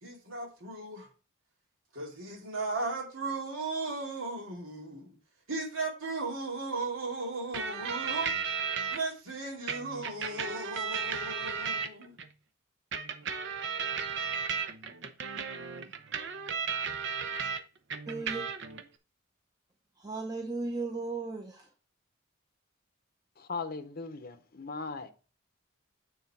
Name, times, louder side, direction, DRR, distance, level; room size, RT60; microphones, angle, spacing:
voice 1, 0.0-1.1 1.9-5.1 5.5-8.4 8.9-12.1, right 3 dB, 85° right, 2.5 m, -36 dB
sound 1, 7.5-9.0 9.7-12.3 12.9-17.6 17.9-18.8, right 6 dB, 60° right, 0.8 m, -34 dB
voice 2, 18.1-18.5 20.0-21.7, right 3 dB, 20° right, 0.8 m, -36 dB
voice 3, 23.4-25.1, left 4 dB, 45° left, 0.7 m, -38 dB
9.3 x 3.9 x 4.6 m
head